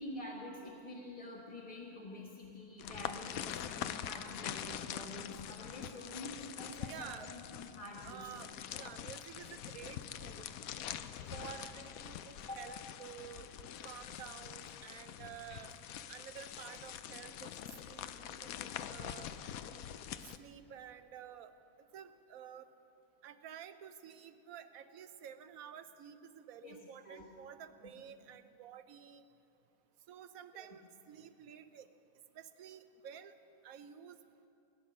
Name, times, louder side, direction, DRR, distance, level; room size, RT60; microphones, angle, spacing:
voice 1, 0.0-8.2 12.4-12.6 26.6-26.8 27.0-27.3 30.6-30.7, left 1 dB, 25° left, -5 dB, 1.4 m, -47 dB
sound 1, 2.8-20.4, left 10 dB, 90° left, 1.1 m, -44 dB
voice 2, 6.9-7.3 8.0-10.4 11.3-13.5 13.8-15.8 16.1-17.6 17.8-19.3 20.2-21.5 21.9-22.7 23.2-29.2 30.1-31.9 32.3-33.3 33.6-34.2, right 9 dB, 85° right, 10 dB, 1.2 m, -51 dB
19.0 x 9.9 x 6.4 m, 2.8 s
omnidirectional pair, 1.4 m